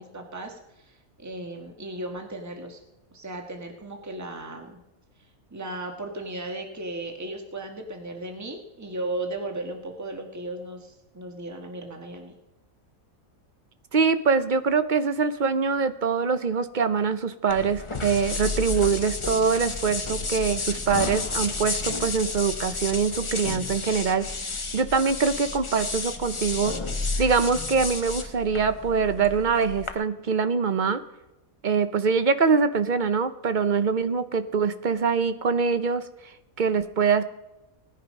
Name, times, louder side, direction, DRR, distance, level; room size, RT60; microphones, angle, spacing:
voice 1, 0.0-2.8 3.1-4.8 5.5-12.4, right 2 dB, 10° right, 3 dB, 1.5 m, -36 dB
voice 2, 13.9-26.7 27.2-31.0 31.6-36.1 36.6-37.2, right 5 dB, 45° right, 11 dB, 0.7 m, -24 dB
sound 1, 17.5-29.9, left 3 dB, 25° left, 0.8 m, -31 dB
18.0 x 10.0 x 5.3 m, 0.94 s
omnidirectional pair, 1.5 m